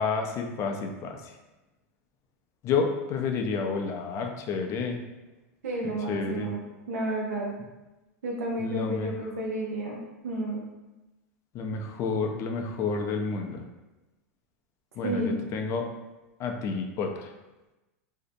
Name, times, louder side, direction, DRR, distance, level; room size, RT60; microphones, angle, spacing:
voice 1, 0.0-1.3 2.6-5.0 6.1-6.5 8.6-9.1 11.5-13.6 15.0-15.8 16.4-17.3, left 4 dB, 40° left, 3 dB, 0.4 m, -30 dB
voice 2, 5.6-6.6 6.9-7.6 8.2-10.0 10.2-10.6 15.0-15.3, right 1 dB, 85° right, -2 dB, 0.5 m, -31 dB
2.6 x 2.0 x 2.6 m, 1.1 s
hypercardioid pair, 115°, 8 cm